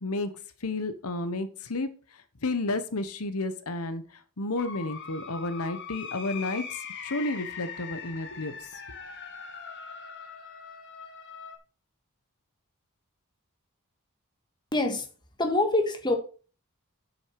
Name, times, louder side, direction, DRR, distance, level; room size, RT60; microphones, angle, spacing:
voice 1, 0.6-1.9 2.4-4.0 4.4-6.8 7.0-8.5, left 2 dB, 80° left, 1.1 m, -31 dB
sound 1, 4.6-11.6, left 6 dB, 55° left, 1.6 m, -41 dB
voice 2, 14.7-15.1 15.4-16.1, left 2 dB, 20° left, 1.7 m, -25 dB
8.2 x 6.4 x 5.9 m
head